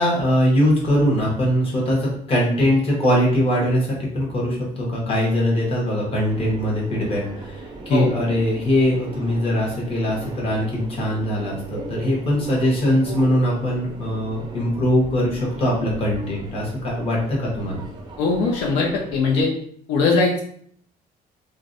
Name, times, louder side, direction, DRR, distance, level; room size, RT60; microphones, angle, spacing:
voice 1, 0.0-17.8, equal, 35° left, -4 dB, 1.0 m, -21 dB
Subway metro underground, 6.3-19.4, right 3 dB, 25° right, 0.5 m, -38 dB
voice 2, 18.2-19.5 19.9-20.4, left 4 dB, 85° left, -1 dB, 0.5 m, -20 dB
2.5 x 2.1 x 2.5 m, 0.62 s
cardioid pair, 110°, 17 cm